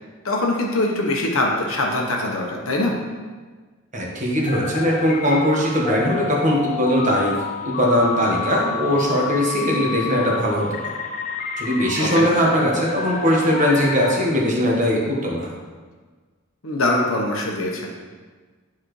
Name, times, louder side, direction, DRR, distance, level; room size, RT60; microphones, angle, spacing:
voice 1, 0.2-2.9 12.0-12.3 16.6-17.9, left 2 dB, 75° left, 0 dB, 1.1 m, -23 dB
voice 2, 3.9-7.3 7.6-10.9 11.6-15.5, equal, 35° right, -3 dB, 1.3 m, -20 dB
sound 1, 4.5-14.2, left 7 dB, 35° left, 0.4 m, -30 dB
10.0 x 4.2 x 3.2 m, 1.4 s
head